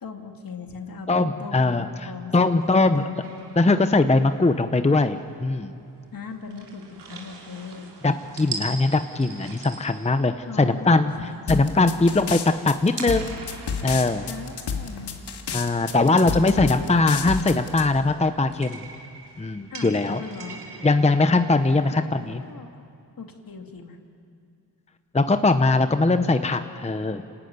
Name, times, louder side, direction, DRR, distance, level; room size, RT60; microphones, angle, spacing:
voice 1, 0.0-3.2 6.1-7.9 10.5-11.4 14.2-15.1 16.0-16.9 19.7-20.6 21.9-22.8 23.2-24.0, left 5 dB, 55° left, 4 dB, 2.6 m, -39 dB
voice 2, 1.1-3.0 3.6-5.7 8.0-12.4 12.6-13.4 13.8-14.3 15.5-18.8 19.4-20.2 20.8-22.4 25.1-27.2, left 3 dB, 15° left, 9 dB, 0.8 m, -21 dB
sound 1, 3.2-22.5, right 4 dB, 90° right, 3.2 m, -43 dB
sound 2, 11.5-17.8, left 6 dB, 75° left, 2.0 m, -30 dB
26.5 x 17.0 x 9.6 m, 2.4 s
cardioid pair, 75°, 40 cm